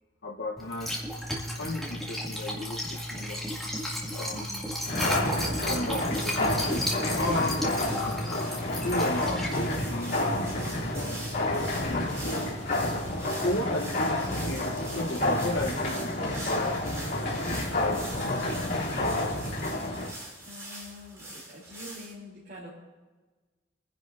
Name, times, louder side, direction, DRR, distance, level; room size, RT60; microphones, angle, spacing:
voice 1, 0.2-1.0 1.4-3.4 4.1-4.6 5.7-7.9 8.8-12.6 13.4-16.8 17.3-19.3, left 2 dB, 80° left, -1 dB, 1.0 m, -35 dB
Liquid, 0.6-11.8, left 1 dB, ahead, 2.3 m, -34 dB
sound 1, 4.8-20.1, left 1 dB, 60° left, 3.0 m, -30 dB
sound 2, 6.0-22.1, right 1 dB, 15° right, 2.9 m, -44 dB
voice 2, 20.4-22.7, left 1 dB, 50° right, -7 dB, 3.1 m, -46 dB
27.5 x 10.5 x 2.6 m, 1.3 s
head